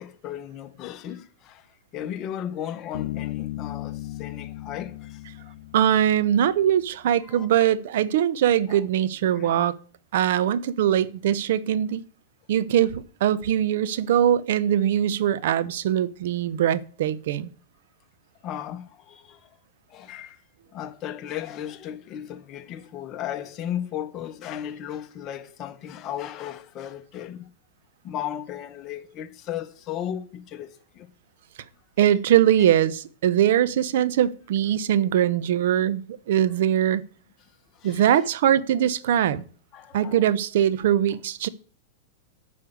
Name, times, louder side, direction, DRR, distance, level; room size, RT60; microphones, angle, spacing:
voice 1, 0.0-1.7 1.9-5.5 7.2-7.5 8.7-8.8 9.3-9.6 18.4-19.5 19.9-20.4 20.7-27.5 28.0-31.1 37.7-38.0 39.7-40.2, left 10 dB, 35° left, 1.1 m, -35 dB
Bass guitar, 2.9-6.6, left 16 dB, 65° left, 0.4 m, -36 dB
voice 2, 5.7-9.7 10.1-12.0 12.5-17.5 32.0-37.0 37.8-39.4 39.9-41.5, right 10 dB, 70° right, 0.8 m, -22 dB
9.4 x 5.5 x 7.9 m
hypercardioid pair, 125°, 0 cm